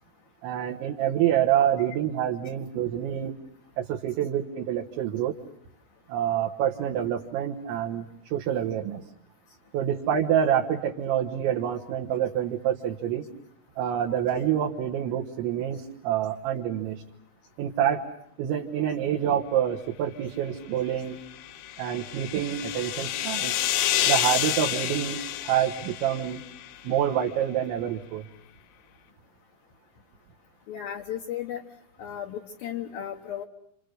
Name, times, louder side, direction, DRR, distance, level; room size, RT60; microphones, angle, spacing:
voice 1, 0.4-3.3 3.8-5.3 6.1-9.0 9.7-13.2 13.8-17.0 17.6-18.1 18.4-21.2 21.8-23.6 24.1-26.4 26.9-28.2, right 10 dB, 75° right, 1 dB, 3.5 m, -27 dB
sound 1, 21.2-26.8, left 12 dB, 85° left, 3.8 m, -29 dB
voice 2, 30.7-31.6 32.0-33.4, left 10 dB, 65° left, 2 dB, 2.5 m, -35 dB
29.5 x 27.5 x 6.5 m, 0.72 s
omnidirectional pair, 5.7 m